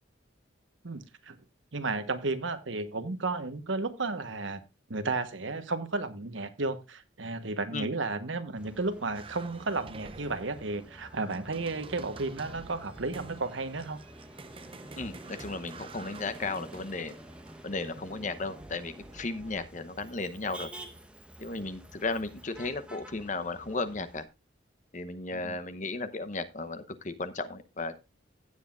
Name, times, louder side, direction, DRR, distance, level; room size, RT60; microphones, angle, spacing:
voice 1, 0.8-1.4 1.7-4.6 4.9-14.0 25.3-25.6, right 3 dB, 75° right, 1.2 m, -33 dB
Motor vehicle (road), 8.6-24.2, right 1 dB, 5° right, 1.0 m, -50 dB
sound 1, 9.1-19.7, right 3 dB, 25° right, 0.7 m, -49 dB
voice 2, 15.0-17.1 17.6-20.7 21.4-24.3 24.9-28.0, left 3 dB, 40° left, 0.8 m, -35 dB
16.0 x 7.8 x 2.5 m
head